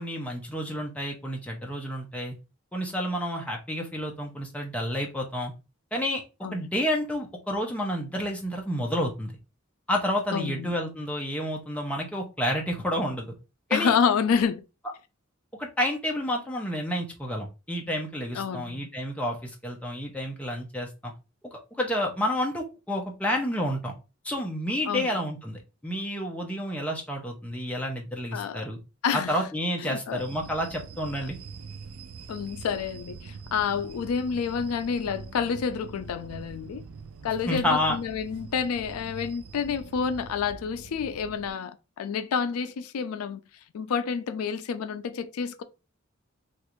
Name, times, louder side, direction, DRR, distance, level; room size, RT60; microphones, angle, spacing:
voice 1, 0.0-2.4 2.7-5.5 5.9-6.2 6.5-9.3 9.9-13.3 13.7-13.9 15.5-21.1 21.5-23.9 24.2-28.8 29.1-31.4 37.5-38.0, equal, 5° left, 0.5 m, -30 dB
voice 2, 10.3-10.7 13.7-14.6 18.3-18.8 24.9-25.1 28.3-28.7 29.0-29.4 29.8-30.2 31.2-31.3 32.3-36.8 37.2-43.4 43.7-45.6, left 6 dB, 85° left, 0.4 m, -29 dB
sound 1, 30.2-41.5, right 5 dB, 80° right, 0.4 m, -44 dB
3.2 x 2.4 x 2.9 m
head